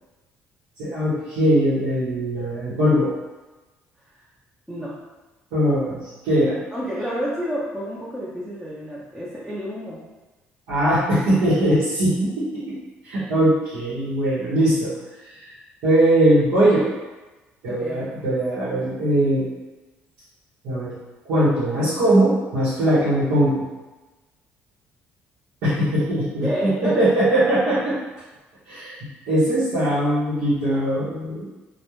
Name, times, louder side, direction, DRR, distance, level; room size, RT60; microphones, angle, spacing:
voice 1, 0.8-3.1 5.5-6.6 10.7-12.8 13.0-14.9 15.2-16.9 17.6-19.5 20.6-21.0 21.2-23.7 25.6-28.0 28.7-31.4, right 1 dB, 85° right, -12 dB, 0.8 m, -21 dB
voice 2, 6.7-10.0 17.7-18.1 26.4-27.1, equal, 5° right, -8 dB, 0.6 m, -29 dB
2.2 x 2.1 x 3.0 m, 1.2 s
cardioid pair, 85°, 5 cm